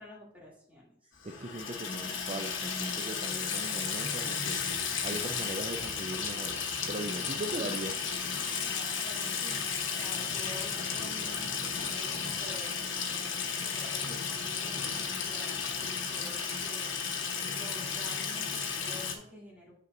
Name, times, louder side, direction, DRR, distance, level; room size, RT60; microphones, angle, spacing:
voice 1, 0.0-1.1 8.4-12.7 13.6-16.9 17.5-19.7, equal, 10° right, -6 dB, 2.8 m, -49 dB
Water tap faucet / Sink (filling or washing), 1.2-19.1, left 6 dB, 75° left, 1.2 m, -34 dB
voice 2, 1.2-4.6 5.0-6.6 6.9-8.0, right 2 dB, 35° right, 5 dB, 0.5 m, -39 dB
8.3 x 6.6 x 2.7 m, 0.66 s
head